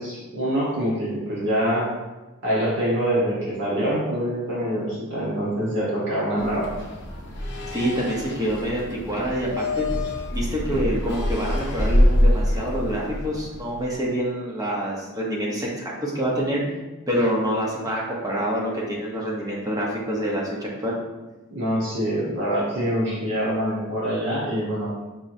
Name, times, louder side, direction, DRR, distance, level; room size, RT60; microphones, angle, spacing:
voice 1, 0.0-1.9 2.4-6.7 21.5-24.9, equal, 55° right, -8 dB, 1.1 m, -25 dB
sound 1, 6.4-13.9, left 1 dB, 50° left, 0.7 m, -25 dB
voice 2, 7.7-9.9 10.3-16.6 17.1-21.0, equal, 15° right, -4 dB, 0.8 m, -26 dB
5.4 x 3.0 x 2.6 m, 1.1 s
head